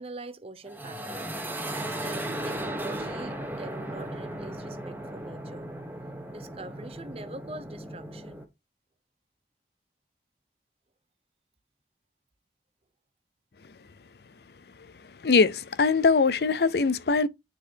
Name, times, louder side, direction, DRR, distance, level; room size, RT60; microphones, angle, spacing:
voice 1, 0.0-1.3 1.9-5.6 6.3-8.4, right 2 dB, 35° right, 0.7 m, -43 dB
sound 1, 0.7-8.4, right 1 dB, 10° right, 1.0 m, -36 dB
voice 2, 15.2-17.3, left 4 dB, 65° left, 0.5 m, -22 dB
9.1 x 4.0 x 2.8 m
head